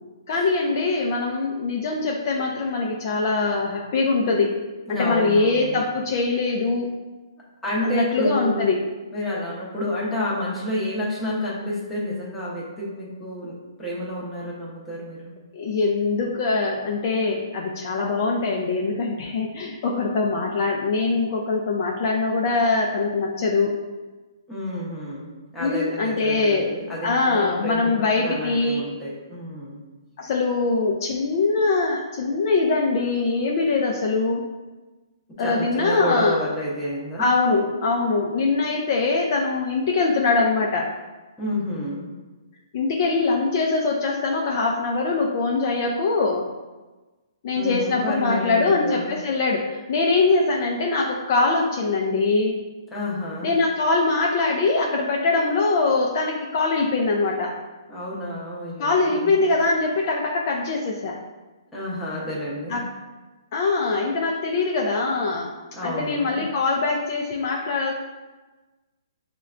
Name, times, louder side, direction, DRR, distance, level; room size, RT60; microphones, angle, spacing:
voice 1, 0.3-4.5 4.9-6.9 7.8-8.8 15.5-23.7 25.6-26.6 27.0-28.8 30.2-34.4 35.4-36.4 37.2-40.9 42.7-46.4 47.4-52.6 53.4-57.5 58.8-61.2 62.7-62.9 63.5-65.5 65.8-67.9, left 3 dB, 40° left, -1 dB, 0.3 m, -22 dB
voice 2, 4.9-5.8 7.6-8.7 9.1-15.3 24.5-25.3 25.5-29.8 35.4-37.2 41.4-42.0 47.5-49.1 52.9-53.5 57.9-59.4 61.7-62.8 65.7-66.4, left 1 dB, 5° left, -7 dB, 0.7 m, -29 dB
5.7 x 2.1 x 2.4 m, 1.2 s
hypercardioid pair, 160°, 3 cm